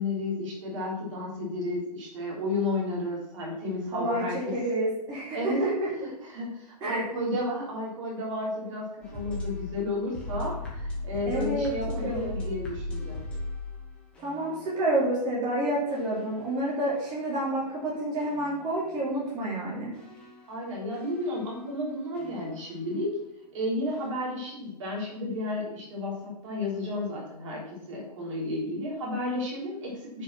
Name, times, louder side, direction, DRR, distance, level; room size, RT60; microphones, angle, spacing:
voice 1, 0.0-4.5 5.3-5.6 6.2-13.2 20.5-23.2 23.5-30.2, left 1 dB, 50° right, -2 dB, 3.6 m, -32 dB
voice 2, 3.9-5.7 6.0-6.1 6.8-7.0 11.2-11.7 12.0-12.3 14.2-19.9, right 1 dB, 20° right, -7 dB, 3.2 m, -29 dB
sound 1, 9.0-15.0 15.9-19.1 19.9-23.0 23.9-24.1, left 2 dB, 5° left, 2.2 m, -39 dB
9.3 x 5.7 x 5.8 m, 0.90 s
hypercardioid pair, 165°, 21 cm